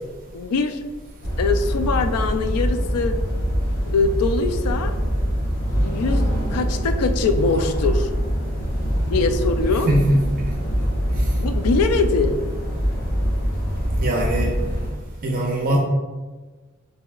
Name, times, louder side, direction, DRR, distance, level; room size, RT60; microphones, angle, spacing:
voice 1, 0.3-0.8 1.4-3.2 3.9-4.9 5.8-8.1 9.1-9.9 11.4-12.4, left 4 dB, 85° left, 9 dB, 0.4 m, -22 dB
sound 1, 1.2-14.9, equal, 45° left, 1.1 m, -23 dB
voice 2, 9.9-10.2 11.1-11.2 14.0-14.6 15.2-15.8, right 1 dB, 40° right, -1 dB, 0.5 m, -21 dB
6.8 x 2.7 x 2.3 m, 1.3 s
head